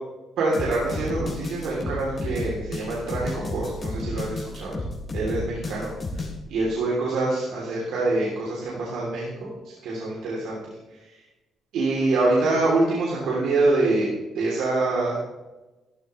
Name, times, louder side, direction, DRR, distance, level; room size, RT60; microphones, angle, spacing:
voice 1, 0.4-4.8 5.1-6.2 6.5-10.6 11.7-14.1 14.3-15.1, right 2 dB, 85° right, -5 dB, 3.4 m, -25 dB
sound 1, 0.5-6.4, left 2 dB, 45° left, 3.7 m, -32 dB
14.0 x 12.0 x 3.3 m, 1.1 s
cardioid pair, 90°, 0 cm